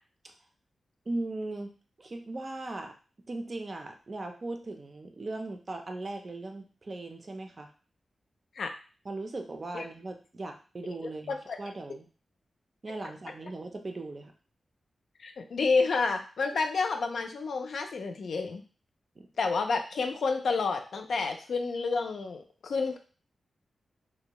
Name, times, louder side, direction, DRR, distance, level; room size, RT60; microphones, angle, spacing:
voice 1, 1.1-1.7 2.0-3.0 3.3-7.7 9.0-12.1 12.8-14.3 19.2-19.3, right 2 dB, 40° right, 4 dB, 0.4 m, -38 dB
voice 2, 15.2-18.6 19.4-23.0, left 4 dB, 80° left, 5 dB, 0.4 m, -29 dB
2.5 x 2.1 x 2.9 m, 0.36 s
wide cardioid pair, 105°, 0 cm